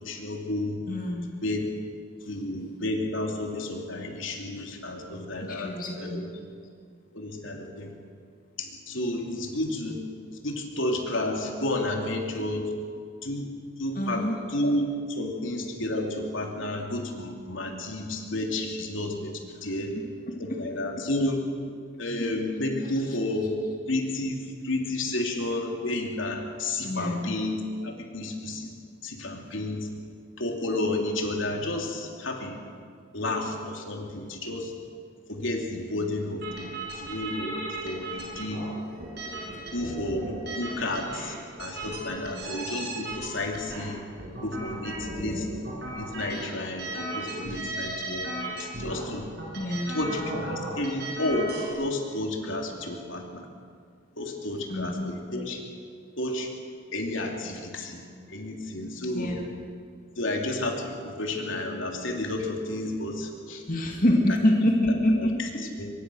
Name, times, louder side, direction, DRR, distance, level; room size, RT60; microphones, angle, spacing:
voice 1, 0.0-0.8 1.4-1.6 2.3-6.3 7.1-7.9 8.6-10.0 10.3-12.7 13.2-13.5 13.8-19.9 20.4-21.4 22.0-23.6 23.9-24.4 24.6-28.7 29.0-29.9 30.4-32.6 33.1-34.7 35.3-38.6 39.1-40.3 40.6-44.0 44.4-45.5 46.0-48.3 48.6-49.3 49.9-53.4 54.2-55.6 56.2-56.5 56.9-58.0 58.3-59.4 60.2-63.6 65.8-65.9, left 1 dB, 75° left, 2 dB, 3.1 m, -31 dB
voice 2, 0.9-1.3 5.4-6.2 13.9-14.4 20.5-20.6 23.1-23.2 26.8-27.3 49.5-50.0 54.7-55.1 59.1-59.5 63.7-65.3, left 1 dB, 40° left, 0 dB, 2.4 m, -26 dB
sound 1, 36.4-51.7, right 1 dB, 55° right, 6.6 m, -36 dB
24.5 x 22.5 x 6.4 m, 2.1 s
head